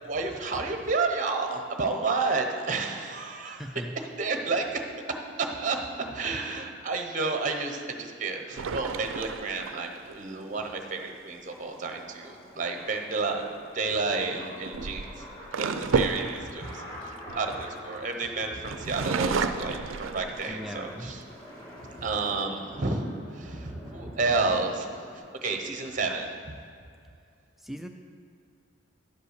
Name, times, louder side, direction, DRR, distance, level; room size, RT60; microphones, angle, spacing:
voice 1, 0.0-3.6 4.0-4.9 5.4-5.8 6.1-13.5 13.7-15.2 15.5-16.8 17.4-21.2 22.0-23.1 23.3-24.9 25.1-26.5, right 3 dB, 40° right, 4 dB, 0.8 m, -30 dB
voice 2, 3.4-3.9 20.5-21.1 27.6-27.9, equal, ahead, 5 dB, 0.3 m, -38 dB
sound 1, 8.6-10.2 13.1-13.4 14.4-18.1 18.6-20.8 21.3-21.4 21.8-22.3, right 4 dB, 70° right, 0.4 m, -31 dB
sound 2, 11.1-25.2, left 1 dB, 20° left, 1.8 m, -46 dB
10.5 x 5.5 x 6.5 m, 2.4 s
head